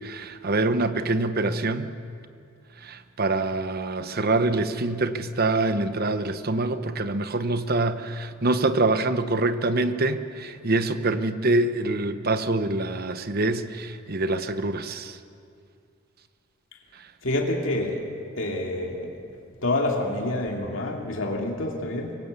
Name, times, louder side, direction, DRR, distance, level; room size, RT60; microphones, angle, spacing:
voice 1, 0.0-1.9 2.8-15.2 16.9-17.1, right 2 dB, 45° right, 10 dB, 1.0 m, -25 dB
voice 2, 17.2-18.0 18.4-19.1 19.6-22.2, left 1 dB, 60° left, 0 dB, 2.6 m, -27 dB
24.5 x 17.0 x 8.2 m, 2.3 s
head